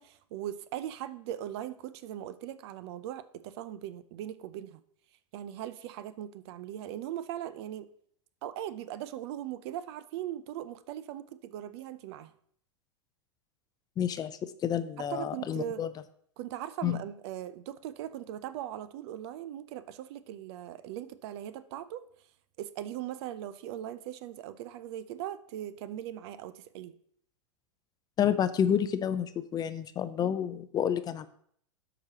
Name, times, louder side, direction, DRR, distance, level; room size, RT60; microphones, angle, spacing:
voice 1, 0.0-4.8 5.3-7.9 8.4-12.3 15.0-15.8 16.4-22.0 22.6-26.9, right 11 dB, 55° right, 14 dB, 0.5 m, -39 dB
voice 2, 14.0-15.9 16.8-17.0 28.2-31.3, left 9 dB, 25° left, 12 dB, 0.5 m, -29 dB
12.5 x 4.9 x 2.9 m, 0.64 s
hypercardioid pair, 105°, 16 cm